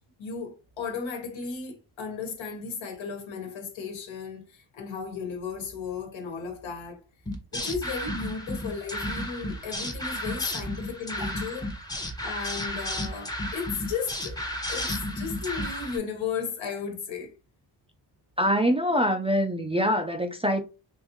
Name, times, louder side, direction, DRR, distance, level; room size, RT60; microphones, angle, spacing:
voice 1, 0.2-7.0 7.5-11.7 12.2-14.4 14.7-17.3, left 5 dB, 75° left, 1.2 m, -35 dB
sound 1, 7.3-16.0, left 1 dB, 10° left, 0.8 m, -33 dB
voice 2, 18.4-20.6, equal, 15° right, 0.4 m, -24 dB
3.5 x 2.6 x 3.0 m
cardioid pair, 95°, 46 cm